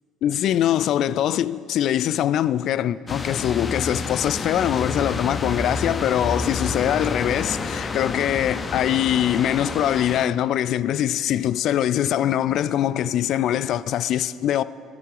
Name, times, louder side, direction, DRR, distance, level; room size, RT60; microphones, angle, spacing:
voice 1, 0.2-14.6, left 11 dB, 50° left, 0.3 m, -23 dB
sound 1, 3.1-10.3, left 3 dB, 30° left, 0.8 m, -29 dB
15.0 x 13.0 x 5.0 m
figure-of-eight pair, 55°, 0 cm